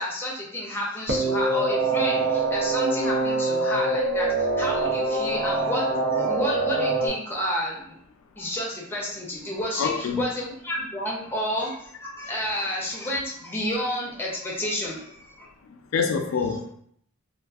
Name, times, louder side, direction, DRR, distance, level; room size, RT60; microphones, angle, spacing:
voice 1, 0.0-8.0 8.4-15.5, left 1 dB, 10° left, -4 dB, 0.5 m, -30 dB
sound 1, 1.1-7.1, right 3 dB, 55° right, 0.5 m, -24 dB
voice 2, 9.8-10.2 15.7-16.7, left 5 dB, 70° left, 4 dB, 0.3 m, -26 dB
2.5 x 2.3 x 2.3 m, 0.66 s
head